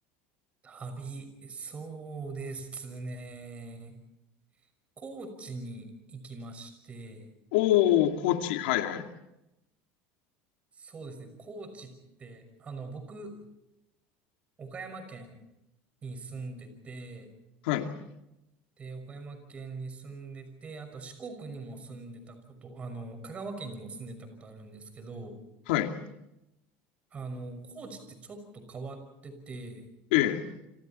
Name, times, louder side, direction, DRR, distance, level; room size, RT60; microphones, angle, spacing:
voice 1, 0.6-4.0 5.0-7.3 10.7-11.9 12.2-13.3 14.6-15.4 16.0-17.3 18.8-25.4 27.1-29.9, right 3 dB, 25° right, 7 dB, 6.1 m, -42 dB
voice 2, 7.5-9.1 17.6-17.9 25.7-26.0 30.1-30.4, left 13 dB, 85° left, 5 dB, 2.5 m, -25 dB
29.5 x 26.0 x 4.4 m, 0.89 s
cardioid pair, 140°, 5 cm